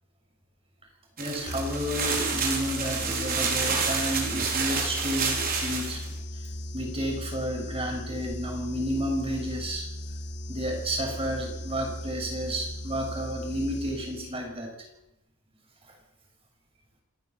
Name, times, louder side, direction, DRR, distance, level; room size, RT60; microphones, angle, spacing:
voice 1, 1.2-6.1 6.7-9.9 10.5-14.7, equal, 25° right, 2 dB, 6.5 m, -31 dB
sound 1, 1.2-6.1, right 5 dB, 40° right, 4.8 m, -29 dB
sound 2, 1.5-14.6, left 1 dB, 50° left, 1.9 m, -37 dB
28.0 x 14.0 x 7.4 m, 0.85 s
head